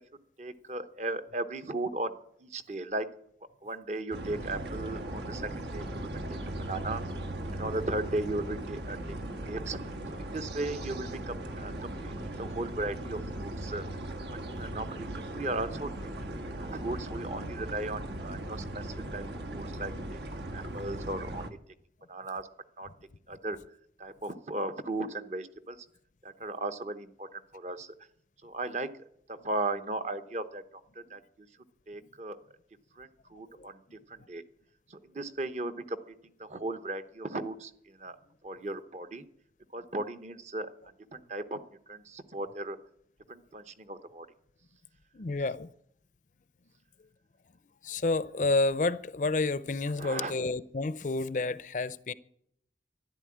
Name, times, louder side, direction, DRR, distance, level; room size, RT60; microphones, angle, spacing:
voice 1, 0.4-2.1 2.4-3.1 3.6-6.4 6.7-7.0 7.5-9.1 9.4-9.8 10.1-13.9 14.6-15.9 16.6-18.9 19.1-20.2 20.5-21.5 22.1-22.5 22.8-22.9 23.3-23.6 24.0-25.8 26.2-27.9 28.4-28.9 29.3-30.6 31.0-31.2 31.9-32.4 33.0-33.8 34.1-34.4 34.9-36.0 36.4-38.2 38.4-39.2 39.7-40.7 41.1-41.6 41.9-42.8 43.3-44.3 50.0-50.3, right 2 dB, 40° right, 0.9 m, -36 dB
sound 1, 4.1-21.5, right 1 dB, 75° right, 1.5 m, -38 dB
voice 2, 45.1-45.7 47.8-52.1, left 3 dB, 45° left, 0.5 m, -30 dB
12.5 x 11.5 x 8.6 m
head